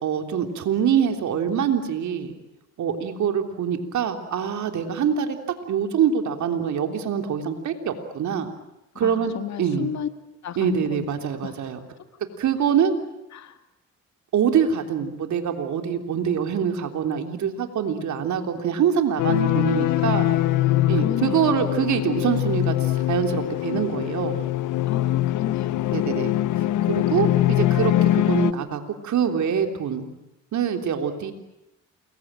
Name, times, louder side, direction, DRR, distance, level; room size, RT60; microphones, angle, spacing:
voice 1, 0.0-2.3 2.8-5.4 5.7-8.5 9.0-9.3 9.6-9.9 10.6-11.8 12.4-12.9 14.3-20.3 20.9-24.4 25.9-26.3 26.8-30.1 30.5-31.3, right 8 dB, 70° right, 6 dB, 3.5 m, -24 dB
voice 2, 8.9-10.1 10.4-11.1 11.4-11.6 13.3-13.6 19.3-20.2 20.9-21.8 24.9-26.2, left 10 dB, 65° left, 9 dB, 2.2 m, -32 dB
sound 1, 19.2-28.5, left 14 dB, 85° left, 1.0 m, -23 dB
28.5 x 22.5 x 9.1 m, 0.90 s
cardioid pair, 90°, 30 cm